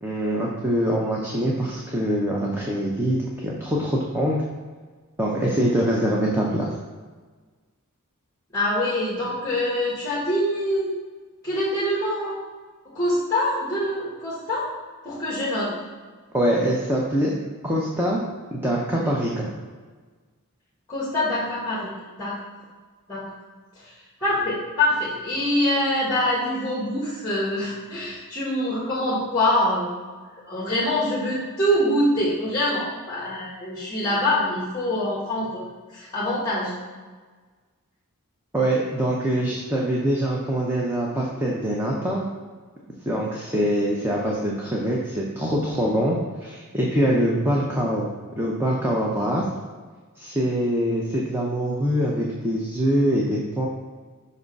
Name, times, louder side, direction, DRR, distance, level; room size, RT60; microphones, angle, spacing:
voice 1, 0.0-4.4 5.2-6.7 16.3-17.3 17.6-18.2 18.5-19.5 38.5-42.3 43.1-48.1 48.4-49.4 50.2-53.7, equal, 10° right, -4 dB, 0.7 m, -24 dB
voice 2, 8.5-10.9 11.4-12.4 12.9-14.7 15.0-15.7 20.9-22.4 23.1-23.3 23.8-23.9 24.2-30.0 30.5-36.7, left 1 dB, 15° left, -7 dB, 1.4 m, -24 dB
5.4 x 3.6 x 5.3 m, 1.4 s
head